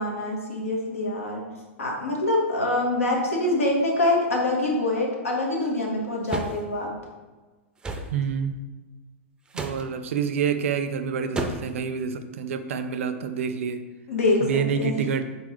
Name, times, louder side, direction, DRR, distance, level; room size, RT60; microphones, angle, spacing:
voice 1, 0.0-1.4 1.8-6.9 14.1-15.0, left 2 dB, 90° left, -1 dB, 1.2 m, -25 dB
sound 1, 6.3-6.6 7.8-8.1 9.5-9.8 11.4-11.8, right 2 dB, 10° right, 0.4 m, -31 dB
voice 2, 8.1-8.6 9.5-13.8 14.4-15.2, right 6 dB, 75° right, 10 dB, 0.4 m, -27 dB
4.1 x 4.0 x 3.0 m, 1.2 s
hypercardioid pair, 115°, 7 cm